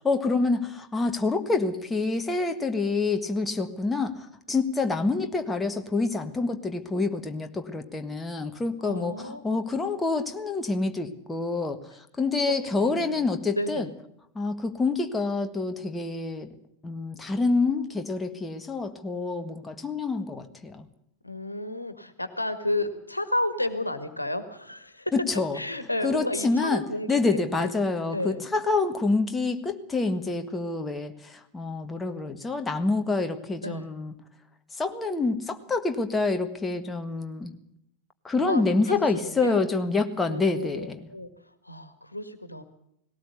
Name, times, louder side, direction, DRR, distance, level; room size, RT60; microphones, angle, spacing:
voice 1, 0.0-13.9 14.3-16.5 16.8-20.9 25.1-25.6 26.0-26.8 27.1-34.1 34.8-37.5 38.2-41.1, left 3 dB, 10° left, 7 dB, 1.6 m, -27 dB
voice 2, 8.8-9.6 12.4-13.2 13.6-13.9 21.2-25.1 25.5-27.7 28.1-28.4 33.6-33.9 38.3-38.6 38.9-39.6 40.3-41.3 41.6-42.6, left 1 dB, 85° left, 11 dB, 1.6 m, -32 dB
19.0 x 17.5 x 8.2 m, 0.73 s
figure-of-eight pair, 90°, 0 cm